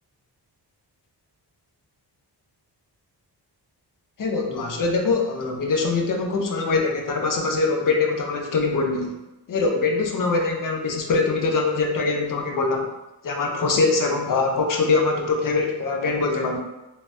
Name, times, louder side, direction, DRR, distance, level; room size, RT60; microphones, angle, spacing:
voice 1, 4.2-9.1 9.5-12.9 13.2-16.6, left 3 dB, 50° left, 2 dB, 0.6 m, -23 dB
3.2 x 2.1 x 2.6 m, 1.0 s
cardioid pair, 70°, 42 cm